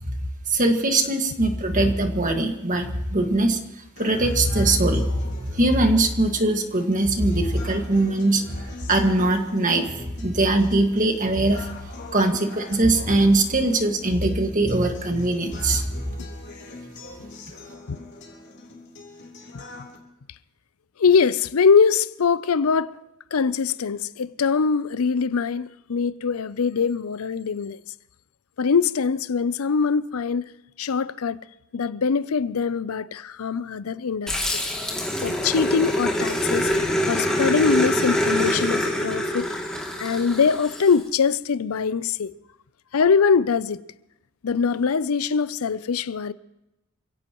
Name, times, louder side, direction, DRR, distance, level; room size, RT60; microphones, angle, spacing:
voice 1, 0.5-3.6 4.0-5.0 5.6-8.4 8.9-11.7 12.1-15.8, right 2 dB, 35° right, 1.8 m, -21 dB
sound 1, 4.0-20.0, left 3 dB, 50° left, 3.6 m, -43 dB
voice 2, 21.0-23.0 23.3-27.8 28.6-30.5 30.8-31.4 31.7-34.6 35.2-36.7 37.0-39.5 40.0-42.3 42.9-43.8 44.4-46.3, left 5 dB, 80° left, 0.5 m, -22 dB
Growling, 34.3-41.0, equal, 5° left, 2.6 m, -25 dB
27.5 x 16.5 x 3.1 m
head